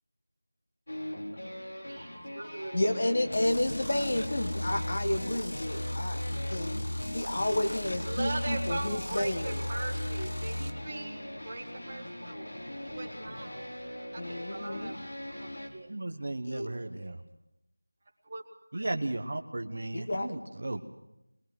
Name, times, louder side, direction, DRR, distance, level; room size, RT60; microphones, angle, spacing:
sound 1, 0.9-15.7, left 1 dB, 70° left, 5.3 m, -41 dB
voice 1, 1.9-2.8 8.0-12.4 12.8-13.7 14.1-14.9 15.3-15.9 16.5-17.1 18.2-18.4 18.7-18.9, right 2 dB, 20° right, -2 dB, 1.9 m, -40 dB
voice 2, 2.7-6.2 6.5-9.6 14.2-14.9 16.4-16.7 19.9-20.4, left 1 dB, 30° left, 4 dB, 1.2 m, -31 dB
sound 2, 3.3-10.7, left 1 dB, 85° left, 1.7 m, -36 dB
voice 3, 15.9-17.2 18.7-20.8, right 2 dB, 40° right, 7 dB, 1.1 m, -35 dB
22.0 x 22.0 x 6.2 m, 0.90 s
figure-of-eight pair, 180°, 0 cm